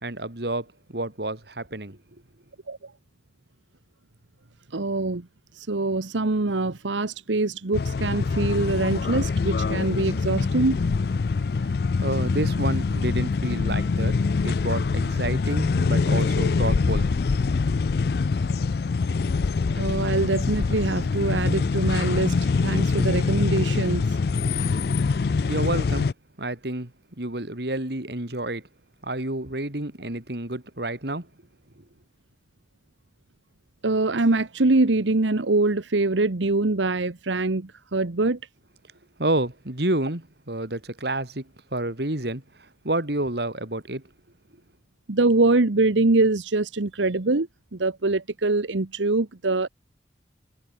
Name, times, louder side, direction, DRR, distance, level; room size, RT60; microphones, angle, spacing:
voice 1, 0.0-2.0 11.5-14.2 14.4-17.1 25.5-26.1 26.4-26.9 27.2-28.7 29.0-31.3 39.2-44.0, right 1 dB, 60° right, 2.8 m, -29 dB
voice 2, 4.7-5.3 5.5-10.8 19.7-24.2 33.8-38.4 45.1-49.7, right 2 dB, 90° right, 1.1 m, -24 dB
sound 1, 7.7-26.1, left 4 dB, 55° left, 0.4 m, -24 dB
head